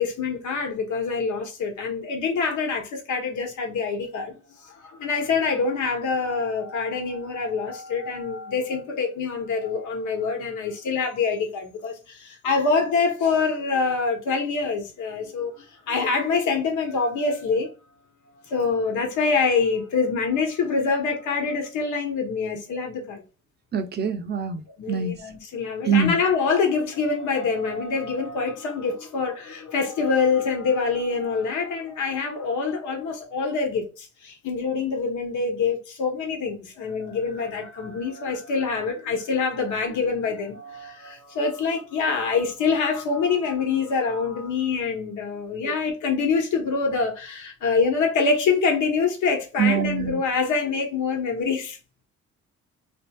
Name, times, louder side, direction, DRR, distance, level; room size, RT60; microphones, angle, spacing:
voice 1, 0.0-4.3 4.8-17.7 18.5-23.2 24.8-51.8, left 4 dB, 75° left, 1.1 m, -25 dB
voice 2, 23.7-24.6 24.9-25.1 25.9-26.2 49.6-50.2, right 6 dB, 35° right, 0.6 m, -23 dB
2.9 x 2.6 x 2.3 m
cardioid pair, 90°, 30 cm